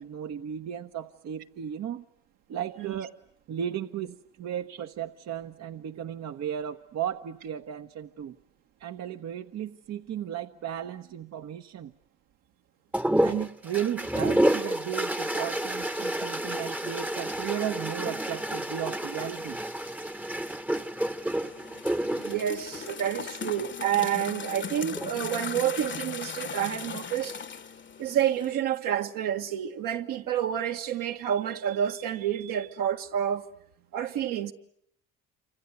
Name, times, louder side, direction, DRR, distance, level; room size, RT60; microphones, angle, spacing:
voice 1, 0.0-2.0 2.5-3.2 3.5-8.3 8.8-11.9 13.2-19.6, right 10 dB, 50° right, 1.1 m, -35 dB
sound 1, 12.9-23.6 24.8-25.4, right 1 dB, 5° right, 1.0 m, -29 dB
sound 2, 21.4-28.6, left 6 dB, 35° left, 1.1 m, -38 dB
voice 2, 22.1-27.4 28.0-33.5 33.9-34.5, right 10 dB, 70° right, 1.8 m, -29 dB
28.0 x 25.5 x 8.0 m
hypercardioid pair, 65°, 35 cm